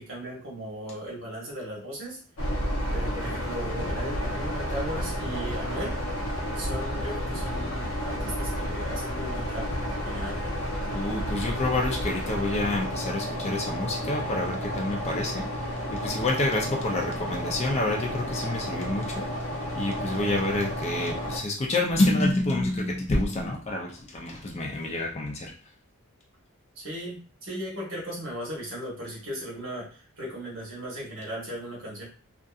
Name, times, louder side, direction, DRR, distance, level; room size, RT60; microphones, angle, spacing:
voice 1, 0.0-2.2 2.9-6.0 6.5-10.4 26.8-32.1, equal, 60° right, -3 dB, 1.1 m, -37 dB
sound 1, 2.4-21.4, equal, 80° left, 0.7 m, -31 dB
voice 2, 10.9-15.5 15.9-19.3 19.7-25.5, left 2 dB, 30° left, 0 dB, 0.4 m, -28 dB
2.6 x 2.5 x 2.3 m, 0.39 s
head